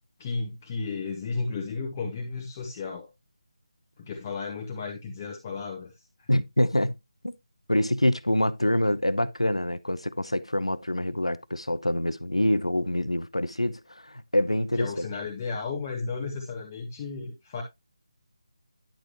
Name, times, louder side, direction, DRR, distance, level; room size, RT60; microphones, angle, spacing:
voice 1, 0.2-3.1 4.0-5.9 6.2-6.3 14.8-17.6, left 4 dB, 20° left, 1.2 m, -33 dB
voice 2, 6.3-6.9 7.2-7.4 7.7-15.1, left 1 dB, 85° left, 0.7 m, -26 dB
10.5 x 6.3 x 2.9 m
figure-of-eight pair, 155°, 3 cm